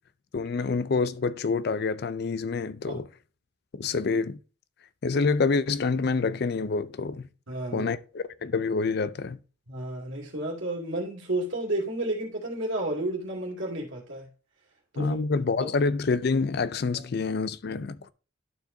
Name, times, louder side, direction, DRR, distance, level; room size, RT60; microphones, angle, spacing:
voice 1, 0.3-3.1 3.7-4.4 5.0-7.3 7.7-9.4 15.0-18.1, left 4 dB, 50° left, 0.4 m, -27 dB
voice 2, 7.5-7.9 9.7-14.3 14.9-15.2 16.9-17.0, right 1 dB, 65° right, 2.4 m, -32 dB
11.5 x 4.6 x 2.6 m
head